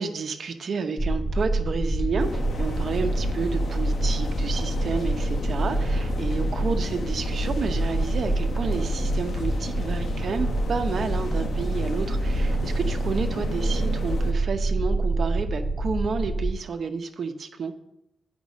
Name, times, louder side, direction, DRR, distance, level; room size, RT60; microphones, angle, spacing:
voice 1, 0.0-17.7, right 5 dB, 60° right, 6 dB, 0.8 m, -30 dB
sound 1, 1.0-16.5, right 1 dB, 15° left, 0.8 m, -26 dB
sound 2, 2.2-14.3, left 4 dB, 65° left, 0.9 m, -36 dB
8.1 x 5.2 x 6.2 m, 0.84 s
wide cardioid pair, 130°, 0 cm